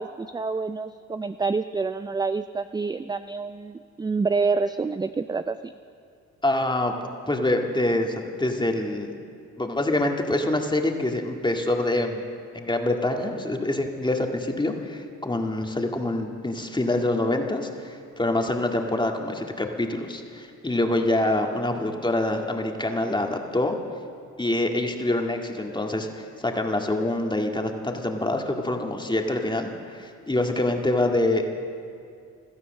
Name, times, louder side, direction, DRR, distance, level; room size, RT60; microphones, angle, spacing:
voice 1, 0.0-5.7, right 4 dB, 15° right, 11 dB, 0.4 m, -27 dB
voice 2, 6.4-6.9 7.3-9.1 9.6-12.2 12.5-23.8 24.4-31.5, left 1 dB, 15° left, 3 dB, 1.9 m, -25 dB
16.5 x 12.5 x 6.5 m, 2.4 s
cardioid pair, 70°, 33 cm